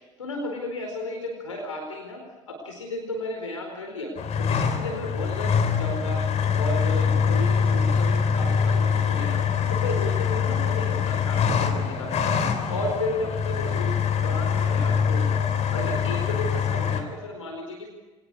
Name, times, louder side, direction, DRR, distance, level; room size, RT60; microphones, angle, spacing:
voice 1, 0.2-2.2 2.5-4.1 4.4-6.2 6.5-9.4 9.7-12.4 12.7-17.9, left 1 dB, 80° left, 2 dB, 4.6 m, -33 dB
sound 1, 4.2-17.0, left 6 dB, 45° left, 3.6 m, -24 dB
25.0 x 20.0 x 8.5 m, 1.2 s
figure-of-eight pair, 65°, 16 cm